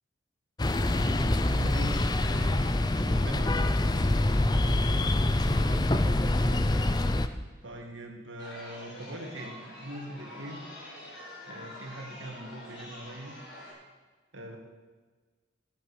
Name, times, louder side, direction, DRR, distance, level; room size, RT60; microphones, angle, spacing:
sound 1, 0.6-7.3, left 1 dB, 20° left, 0.5 m, -25 dB
voice 1, 1.4-5.1 7.6-10.6 11.4-13.3 14.3-14.6, right 1 dB, 80° right, 2 dB, 2.2 m, -42 dB
Chatter, 8.4-13.7, left 1 dB, 70° left, 4.9 m, -46 dB
14.5 x 8.6 x 6.4 m, 1.4 s
head